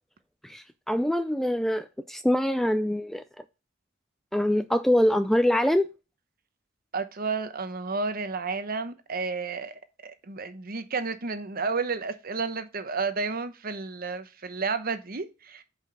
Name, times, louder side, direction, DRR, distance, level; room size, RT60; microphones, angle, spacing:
voice 1, 0.4-3.2 4.3-5.9, left 1 dB, ahead, 0.4 m, -24 dB
voice 2, 6.9-15.6, right 4 dB, 50° right, 1.0 m, -31 dB
5.8 x 5.3 x 6.2 m
head